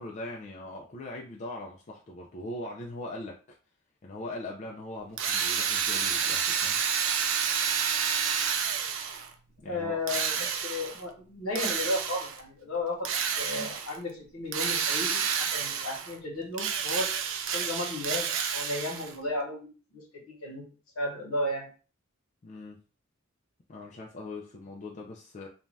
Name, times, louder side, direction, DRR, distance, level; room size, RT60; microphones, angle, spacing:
voice 1, 0.0-3.4 4.0-6.8 9.6-10.0 22.4-22.8 23.7-25.5, left 2 dB, 35° left, -1 dB, 0.3 m, -40 dB
Drill, 5.2-9.3 10.1-11.0 11.6-12.4 13.0-14.0 14.5-16.2 16.5-19.2, right 7 dB, 60° right, 0.4 m, -29 dB
voice 2, 9.6-13.1 13.4-17.1 17.5-20.6 21.0-21.7, left 2 dB, 70° left, -1 dB, 1.1 m, -34 dB
2.6 x 2.2 x 3.2 m, 0.35 s
head